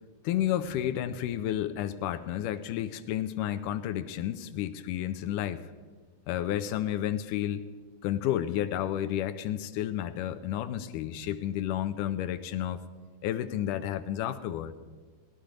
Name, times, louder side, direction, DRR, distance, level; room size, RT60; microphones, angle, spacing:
voice 1, 0.2-5.6 6.3-7.6 8.0-12.8 13.2-14.7, left 11 dB, 80° left, 10 dB, 2.1 m, -31 dB
18.0 x 12.0 x 5.0 m, 1.4 s
omnidirectional pair, 3.8 m